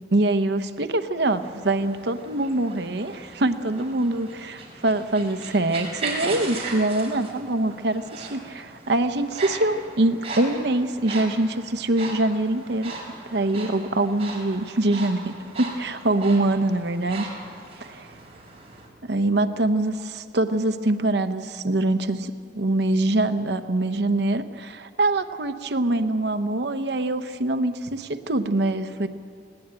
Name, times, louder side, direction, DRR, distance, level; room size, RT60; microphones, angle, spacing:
voice 1, 0.1-12.9 13.3-17.3 17.8-18.1 19.0-29.1, right 2 dB, 65° right, 10 dB, 0.9 m, -24 dB
sound 1, 1.2-18.9, right 3 dB, 35° right, 4.4 m, -38 dB
19.5 x 17.5 x 8.8 m, 2.2 s
head